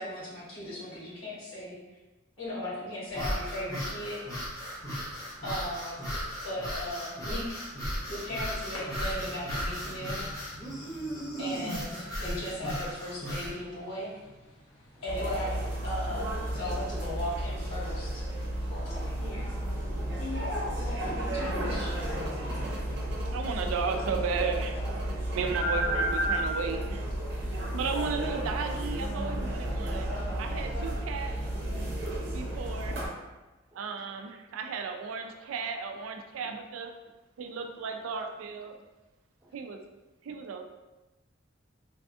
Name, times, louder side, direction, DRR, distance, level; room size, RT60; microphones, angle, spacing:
voice 1, 0.0-1.8 2.4-4.4 5.4-6.0 6.4-7.6 8.0-10.2 10.8-11.0 11.4-14.1 15.0-18.3 18.7-19.4 20.2-21.9, left 1 dB, 75° left, -8 dB, 1.3 m, -37 dB
sound 1, 3.1-13.6, equal, 20° left, 0.7 m, -36 dB
voice 2, 5.1-5.4 11.0-11.4 14.9-15.0 19.6-19.7 33.7-33.9 39.4-39.6, right 1 dB, 10° right, -4 dB, 0.4 m, -62 dB
sound 2, 8.7-16.8, left 1 dB, 90° left, 0.8 m, -50 dB
sound 3, 15.1-33.1, right 1 dB, 55° right, 0.7 m, -32 dB
voice 3, 23.3-25.0 25.3-27.2 27.5-31.4 32.3-33.1 33.7-36.9 37.4-38.7 39.5-39.8 40.2-40.6, right 5 dB, 85° right, 4 dB, 0.3 m, -35 dB
3.3 x 2.4 x 2.5 m, 1.1 s
head